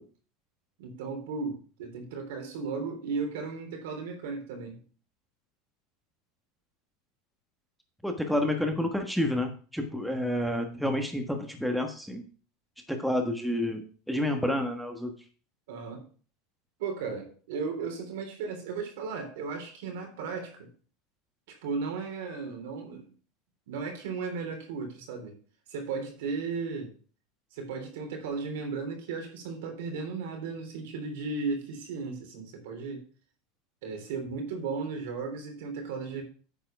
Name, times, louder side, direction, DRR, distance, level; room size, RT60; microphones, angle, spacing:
voice 1, 0.8-4.8 15.7-16.0 16.8-20.7 21.5-23.1 23.7-25.3 25.7-26.9 27.5-33.0 33.8-36.2, right 4 dB, 80° right, 4 dB, 3.2 m, -35 dB
voice 2, 8.0-12.3 12.9-15.2, left 1 dB, ahead, 4 dB, 1.4 m, -29 dB
9.0 x 4.7 x 5.8 m, 0.40 s
supercardioid pair, 115°, 0 cm